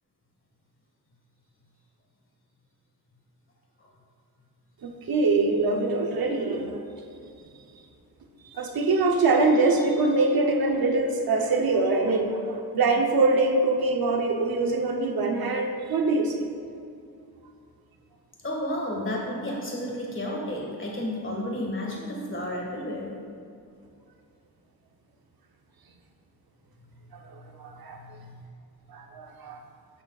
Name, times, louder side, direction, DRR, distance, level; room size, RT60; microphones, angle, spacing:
voice 1, 4.8-6.8 8.4-16.5 27.6-28.0 28.9-29.6, right 3 dB, 65° right, 3 dB, 0.8 m, -24 dB
voice 2, 18.4-23.1 27.3-28.3, left 1 dB, 30° left, -3 dB, 1.8 m, -32 dB
11.5 x 6.8 x 2.4 m, 2.5 s
wide cardioid pair, 140°, 38 cm